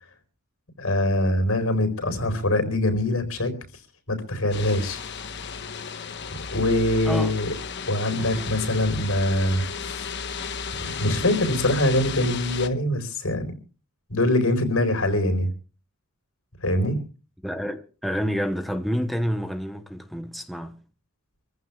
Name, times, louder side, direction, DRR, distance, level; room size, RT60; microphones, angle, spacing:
voice 1, 0.8-3.5 4.1-5.0 6.5-7.5 7.9-10.2 10.8-13.5 14.1-15.5 16.6-17.0, left 1 dB, 90° left, 4.5 m, -23 dB
sound 1, 4.5-12.7, left 5 dB, 55° left, 1.2 m, -34 dB
voice 2, 17.4-20.8, equal, ahead, 1.0 m, -28 dB
27.5 x 15.0 x 2.4 m
head